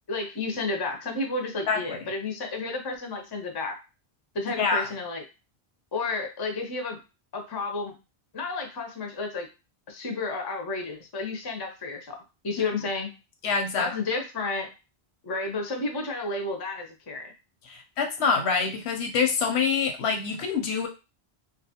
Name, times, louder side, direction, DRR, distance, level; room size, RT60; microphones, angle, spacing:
voice 1, 0.1-3.8 4.3-5.2 5.9-7.0 7.3-7.9 8.3-9.5 9.9-12.2 12.4-13.1 13.8-14.7 15.2-17.3, left 3 dB, 35° left, 3 dB, 0.4 m, -31 dB
voice 2, 1.7-2.0 4.6-4.9 13.4-13.9 17.7-20.9, left 5 dB, 85° left, 4 dB, 0.9 m, -26 dB
2.4 x 2.3 x 2.7 m, 0.29 s
omnidirectional pair, 1.1 m